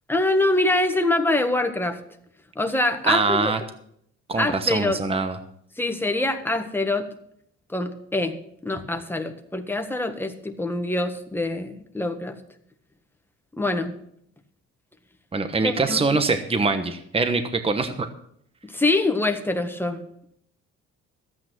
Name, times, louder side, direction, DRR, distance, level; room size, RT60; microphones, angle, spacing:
voice 1, 0.1-2.0 2.5-3.5 4.4-5.0 5.8-7.1 7.7-8.4 8.6-12.4 13.6-13.9 15.6-16.2 18.6-20.0, left 2 dB, 5° left, 6 dB, 1.5 m, -24 dB
voice 2, 3.0-3.6 4.3-5.4 15.3-18.1, right 3 dB, 20° right, 8 dB, 1.1 m, -23 dB
13.0 x 9.0 x 6.1 m, 0.70 s
cardioid pair, 90°, 30 cm